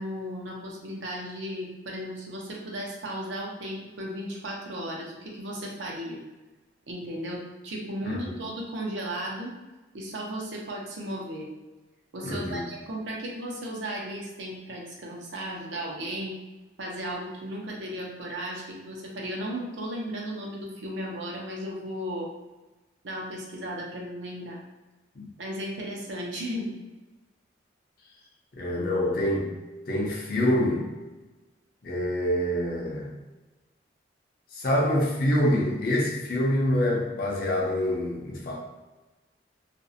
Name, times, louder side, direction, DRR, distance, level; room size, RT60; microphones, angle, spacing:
voice 1, 0.0-6.2 6.9-9.5 9.9-11.5 12.1-16.4 16.8-22.3 23.0-24.6 25.4-26.8, equal, 80° right, -2 dB, 0.6 m, -35 dB
voice 2, 12.2-12.6 28.5-29.6 29.9-30.9 31.8-33.1 34.5-38.6, left 1 dB, 50° left, -2 dB, 0.5 m, -26 dB
2.5 x 2.0 x 2.6 m, 1.1 s
head